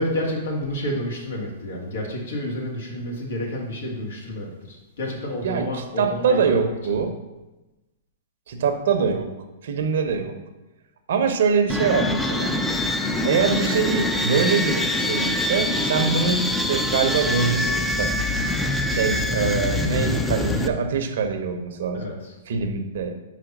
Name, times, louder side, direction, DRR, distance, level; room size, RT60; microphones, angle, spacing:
voice 1, 0.0-6.5 21.9-22.3, left 1 dB, 80° left, -1 dB, 1.9 m, -29 dB
voice 2, 5.4-7.2 8.5-9.3 9.6-10.3 11.1-12.6 13.2-18.1 18.9-22.1 22.5-23.2, right 5 dB, 70° right, 6 dB, 0.9 m, -23 dB
sound 1, 11.7-20.7, left 1 dB, 5° left, 0.5 m, -24 dB
5.1 x 4.6 x 5.9 m, 1.1 s
hypercardioid pair, 135°, 0 cm